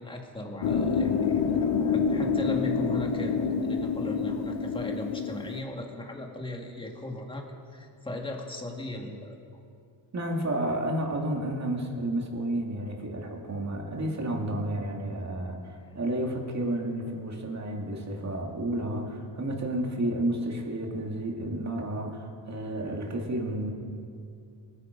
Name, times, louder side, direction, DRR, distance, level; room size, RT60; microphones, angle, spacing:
voice 1, 0.0-1.3 1.6-9.4, left 1 dB, 10° left, 1 dB, 1.8 m, -38 dB
sound 1, 0.6-5.6, left 5 dB, 65° left, 1.1 m, -27 dB
voice 2, 10.1-23.7, right 1 dB, 35° right, 1 dB, 2.5 m, -31 dB
24.0 x 9.4 x 5.3 m, 2.3 s
cardioid pair, 125°, 47 cm